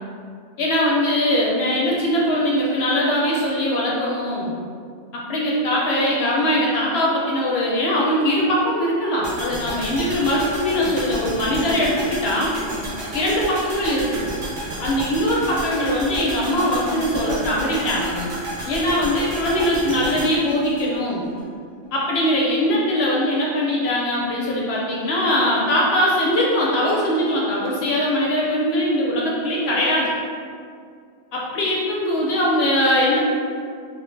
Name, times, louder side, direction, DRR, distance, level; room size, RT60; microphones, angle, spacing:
voice 1, 0.6-4.5 5.1-12.5 13.1-14.2 14.8-18.3 18.6-21.3 21.9-30.1 31.3-33.2, left 1 dB, 65° left, -4 dB, 0.7 m, -21 dB
sound 1, 9.2-21.4 21.7-21.8, right 1 dB, 70° right, 1.1 m, -31 dB
3.0 x 2.0 x 3.1 m, 2.2 s
omnidirectional pair, 1.2 m